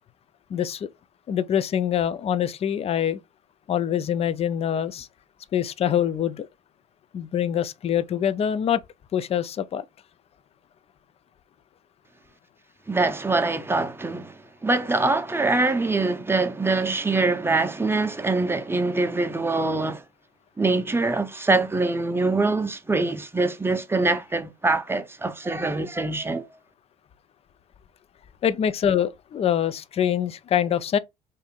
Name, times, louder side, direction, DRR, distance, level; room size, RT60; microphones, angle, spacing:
voice 1, 0.5-0.9 1.3-3.2 3.7-5.1 5.5-6.5 7.1-8.8 9.1-9.8 28.4-31.0, left 9 dB, 35° left, 0.4 m, -24 dB
voice 2, 12.9-20.0 20.6-26.5, right 3 dB, 15° right, 0.6 m, -24 dB
2.6 x 2.5 x 3.8 m
hypercardioid pair, 60°, 18 cm